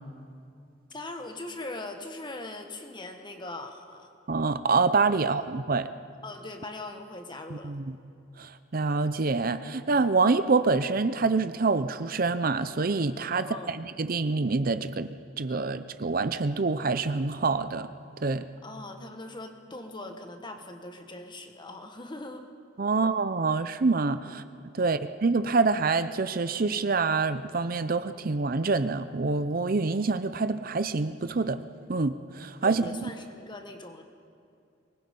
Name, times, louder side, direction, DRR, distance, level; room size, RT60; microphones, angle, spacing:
voice 1, 0.9-4.1 5.1-5.4 6.2-7.7 13.3-13.8 18.6-22.5 22.8-23.0 24.2-24.4 24.8-25.0 32.6-34.0, left 2 dB, 25° left, 5 dB, 1.6 m, -41 dB
voice 2, 4.3-5.9 7.6-8.0 8.4-15.1 15.4-17.9 18.2-18.4 22.8-24.4 24.7-31.6 31.9-33.0, right 4 dB, 50° right, 12 dB, 0.6 m, -26 dB
23.5 x 20.0 x 5.5 m, 2.5 s
head